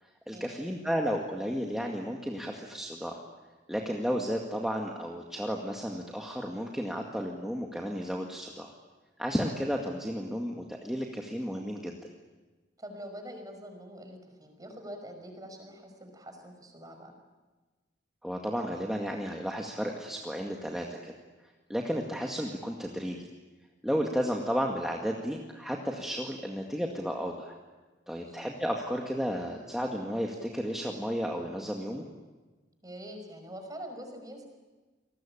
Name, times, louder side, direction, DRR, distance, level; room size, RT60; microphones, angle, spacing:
voice 1, 0.3-3.2 3.7-8.7 9.2-11.9 18.2-21.1 21.7-23.3 23.8-27.6 28.1-32.0, equal, ahead, 0 dB, 2.0 m, -33 dB
voice 2, 12.8-17.2 28.1-28.4 32.8-34.5, equal, 20° right, 5 dB, 5.4 m, -45 dB
28.5 x 20.5 x 8.8 m, 1.2 s
head